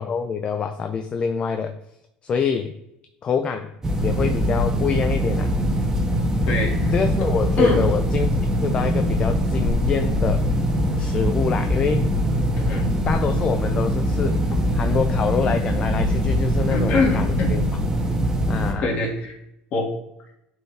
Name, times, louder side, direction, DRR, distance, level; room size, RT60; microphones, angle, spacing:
voice 1, 0.0-1.8 2.2-2.7 3.2-3.7 4.0-5.5 6.9-8.3 8.6-10.4 11.0-12.1 13.0-14.4 14.7-17.6 18.5-19.0, left 6 dB, 35° left, 7 dB, 0.6 m, -25 dB
sound 1, 3.8-18.7, equal, 20° right, 1.7 m, -22 dB
voice 2, 6.5-6.9 7.2-7.3 7.6-7.9 12.5-12.9 16.7-17.6 18.8-19.3 19.7-19.9, left 3 dB, 50° left, 0 dB, 2.3 m, -23 dB
11.0 x 4.5 x 3.5 m, 0.84 s
supercardioid pair, 100°, 3 cm